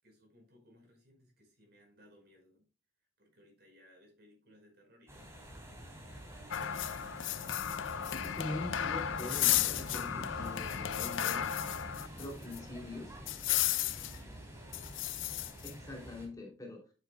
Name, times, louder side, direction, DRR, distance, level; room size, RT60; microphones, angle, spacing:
voice 1, 0.0-2.7 3.0-5.6 6.0-7.2 13.6-15.5, left 1 dB, 55° right, 2 dB, 5.0 m, -63 dB
sound 1, 5.1-16.3, right 1 dB, 15° right, 3.3 m, -51 dB
Wind / Waves surf, 5.5-15.5, equal, 40° right, 3.5 m, -49 dB
sound 2, 6.5-12.3 12.5-12.6 13.3-14.2 14.7-15.7, left 11 dB, 80° left, 0.5 m, -34 dB
voice 2, 8.0-11.5 12.2-13.1 15.6-16.8, left 2 dB, 20° left, 0 dB, 3.0 m, -43 dB
11.0 x 8.3 x 2.3 m, 0.34 s
head